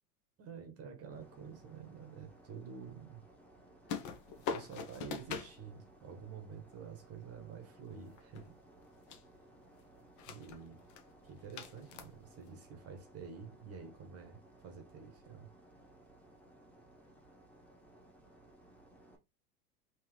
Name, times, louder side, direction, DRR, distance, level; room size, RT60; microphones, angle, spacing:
voice 1, 0.4-3.2 3.9-4.0 4.3-8.6 10.3-10.8 11.2-15.5, right 6 dB, 30° right, 1.0 m, -49 dB
sound 1, 1.1-19.2, right 1 dB, 5° left, 1.2 m, -61 dB
sound 2, 3.9-5.6 7.9-8.8 9.1-9.4 10.0-10.6 10.9-11.0 11.5-12.5, left 6 dB, 40° left, 0.8 m, -42 dB
3.6 x 2.9 x 3.1 m
hypercardioid pair, 95°, 45 cm